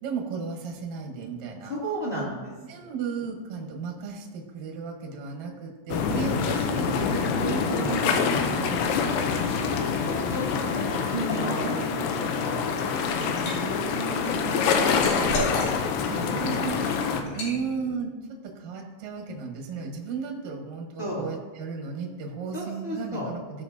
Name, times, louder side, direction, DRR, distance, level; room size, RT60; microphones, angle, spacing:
voice 1, 0.0-1.7 2.2-2.3 2.7-9.2 10.9-11.0 11.4-12.5 13.2-15.3 16.1-23.6, right 5 dB, 60° right, 0 dB, 1.9 m, -35 dB
voice 2, 1.7-2.5 2.8-2.9 7.7-8.0 9.4-13.4 14.9-16.5 17.1-17.4 21.0-21.3 22.5-23.3, equal, 20° left, -6 dB, 1.7 m, -35 dB
sound 1, 5.9-17.2, left 6 dB, 90° left, 3.0 m, -26 dB
Liquid, 12.7-13.5 14.0-16.1 16.5-16.7 17.3-17.6, left 1 dB, 60° left, 3.7 m, -33 dB
17.5 x 6.7 x 2.8 m, 1.3 s
omnidirectional pair, 5.0 m